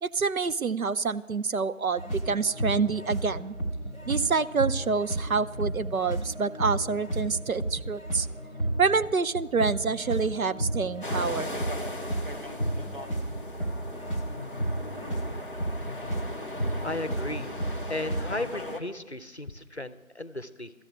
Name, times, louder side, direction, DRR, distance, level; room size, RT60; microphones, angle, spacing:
voice 1, 0.0-3.6 4.1-8.3 8.8-11.5, right 5 dB, 80° right, 13 dB, 0.7 m, -27 dB
sound 1, 2.0-18.5, right 1 dB, 55° right, 3.0 m, -33 dB
sound 2, 11.0-18.8, left 1 dB, 40° right, 1.1 m, -38 dB
voice 2, 16.8-17.5 17.9-20.7, left 2 dB, 50° left, 15 dB, 0.7 m, -35 dB
13.0 x 7.6 x 8.5 m, 1.0 s
figure-of-eight pair, 180°, 42 cm